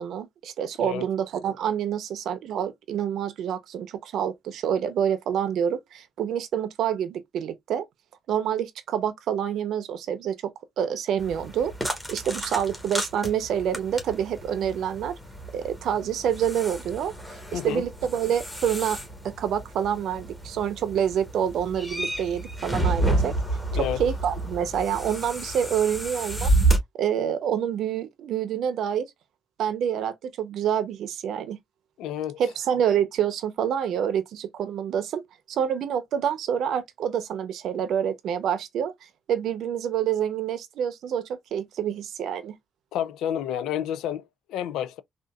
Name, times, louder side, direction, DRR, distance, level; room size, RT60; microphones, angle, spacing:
voice 1, 0.0-7.8 8.3-10.5 10.8-15.1 15.5-17.1 17.5-19.0 19.4-23.3 23.7-26.5 26.9-29.1 29.6-31.6 32.4-35.2 35.5-38.9 39.3-42.5, right 9 dB, 75° right, 0.6 m, -27 dB
sound 1, 11.2-26.8, right 2 dB, 5° left, 1.3 m, -30 dB
voice 2, 17.5-17.8 23.7-24.0 32.0-32.4 42.9-45.0, left 10 dB, 90° left, 0.3 m, -30 dB
3.7 x 2.4 x 2.3 m
cardioid pair, 90°, 0 cm